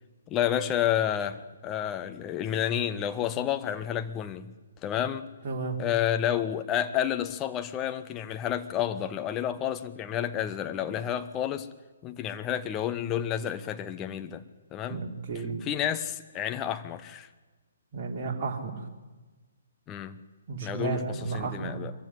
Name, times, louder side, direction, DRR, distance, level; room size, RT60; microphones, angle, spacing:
voice 1, 0.3-4.5 4.8-5.2 5.8-11.7 12.0-14.4 14.7-15.0 15.6-17.3 19.9-20.2 20.6-21.9, left 10 dB, 20° left, 9 dB, 1.1 m, -30 dB
voice 2, 5.4-5.8 14.9-15.6 17.9-18.8 20.5-21.8, right 4 dB, 35° right, 1 dB, 3.5 m, -33 dB
24.0 x 15.0 x 9.7 m, 1.3 s
figure-of-eight pair, 130°, 0 cm